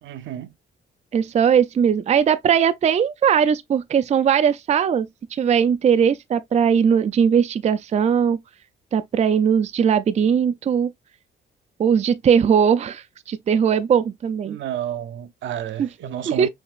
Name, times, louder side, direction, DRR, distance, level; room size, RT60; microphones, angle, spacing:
voice 1, 0.0-0.5 14.5-16.5, right 10 dB, 70° right, 0.7 m, -31 dB
voice 2, 1.1-8.4 8.9-10.9 11.8-14.6 15.8-15.9 16.3-16.5, right 7 dB, 35° right, 0.4 m, -19 dB
6.0 x 2.8 x 2.4 m
cardioid pair, 90°, 20 cm